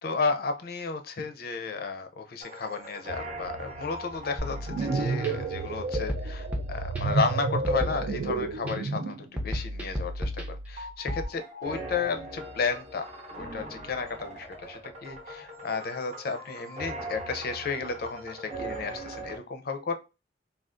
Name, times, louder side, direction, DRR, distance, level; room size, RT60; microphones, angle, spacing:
voice 1, 0.0-13.1 13.3-19.9, left 4 dB, 55° left, 7 dB, 0.5 m, -33 dB
sound 1, 2.4-7.3 10.8-19.4, right 1 dB, 40° right, 0.7 m, -41 dB
sound 2, 4.4-5.3 5.9-7.3 7.6-8.7 9.4-11.2, equal, 10° right, 0.5 m, -34 dB
sound 3, 4.5-9.3, right 3 dB, 75° right, 0.4 m, -30 dB
3.5 x 2.3 x 2.5 m, 0.28 s
head